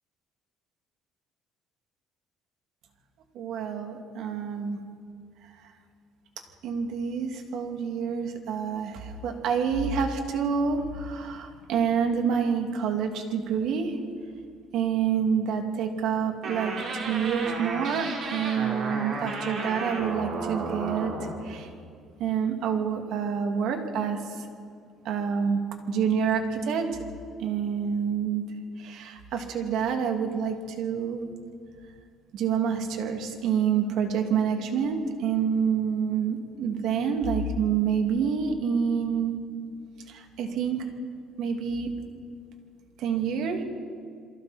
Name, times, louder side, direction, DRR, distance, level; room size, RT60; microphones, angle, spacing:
voice 1, 3.3-4.8 6.6-14.0 14.7-21.7 22.2-24.4 25.0-25.6 25.9-26.9 27.4-28.4 28.8-31.2 32.3-39.3 40.1-40.9 41.4-41.9 43.0-43.6, right 7 dB, 65° right, 4 dB, 2.6 m, -27 dB
sound 1, 16.4-21.4, right 3 dB, 45° right, 4.3 m, -33 dB
28.5 x 23.0 x 4.4 m, 2.3 s
cardioid pair, 150°, 0 cm